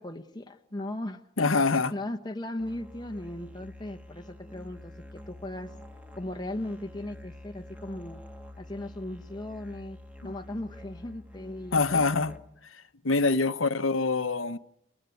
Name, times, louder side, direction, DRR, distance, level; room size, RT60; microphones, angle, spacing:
voice 1, 0.0-5.7 6.2-8.2 8.6-10.0 10.2-12.1, left 1 dB, 20° left, 1.0 m, -37 dB
voice 2, 1.4-1.9 10.2-10.3 11.7-12.3 12.7-14.6, left 3 dB, 85° left, 1.1 m, -25 dB
Musical instrument, 2.6-12.7, left 1 dB, 5° right, 1.5 m, -47 dB
29.5 x 15.0 x 9.3 m
head